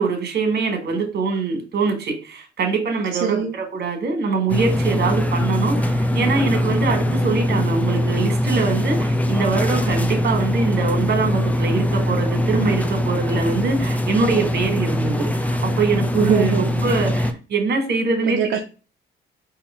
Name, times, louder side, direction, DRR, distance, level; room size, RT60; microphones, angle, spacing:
voice 1, 0.0-18.4, right 4 dB, 55° right, 1.7 m, -23 dB
voice 2, 3.2-3.6 16.3-16.7 18.3-18.6, right 7 dB, 75° right, 0.6 m, -23 dB
sound 1, 4.5-17.3, left 1 dB, 5° left, 0.6 m, -22 dB
4.2 x 2.9 x 4.3 m
cardioid pair, 90°, 20 cm